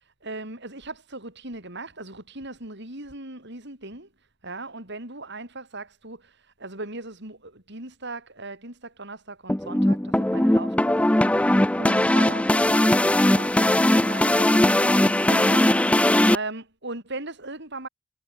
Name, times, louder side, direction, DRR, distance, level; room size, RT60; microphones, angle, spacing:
voice 1, 0.2-4.1 4.4-6.3 6.6-11.1 11.8-13.6 14.0-15.7 16.3-17.9, right 2 dB, 60° right, 7.0 m, -38 dB
sound 1, 9.5-16.4, left 1 dB, 5° left, 0.5 m, -20 dB
head